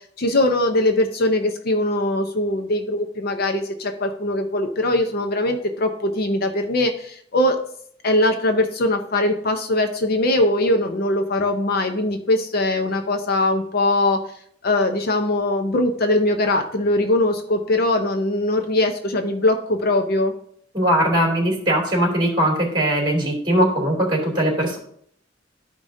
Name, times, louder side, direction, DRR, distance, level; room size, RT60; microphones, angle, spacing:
voice 1, 0.2-7.6 8.0-14.2 14.6-20.3, left 1 dB, 50° left, 6 dB, 0.6 m, -21 dB
voice 2, 20.7-24.8, right 1 dB, 25° right, -2 dB, 3.1 m, -20 dB
13.0 x 4.9 x 2.7 m, 0.65 s
head